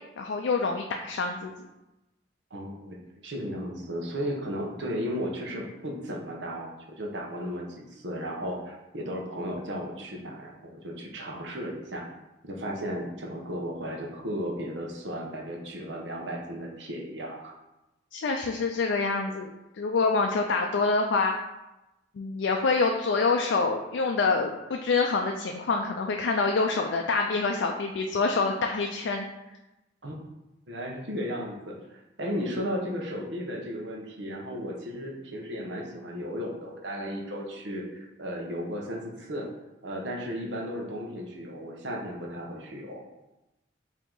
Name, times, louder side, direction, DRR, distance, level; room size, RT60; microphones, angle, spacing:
voice 1, 0.2-1.5 18.1-21.3 22.2-29.3, left 4 dB, 70° left, 2 dB, 0.4 m, -26 dB
voice 2, 2.5-12.0 12.4-17.5 30.0-30.2 30.7-39.5 39.8-43.0, equal, 70° right, -1 dB, 0.9 m, -35 dB
4.8 x 2.9 x 3.8 m, 0.97 s
head